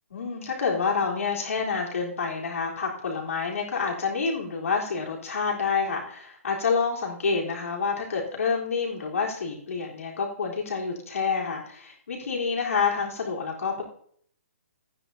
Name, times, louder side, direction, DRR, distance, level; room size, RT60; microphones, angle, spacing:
voice 1, 0.1-13.8, left 5 dB, 70° left, -3 dB, 3.8 m, -28 dB
14.5 x 9.6 x 2.8 m, 0.62 s
hypercardioid pair, 180°, 8 cm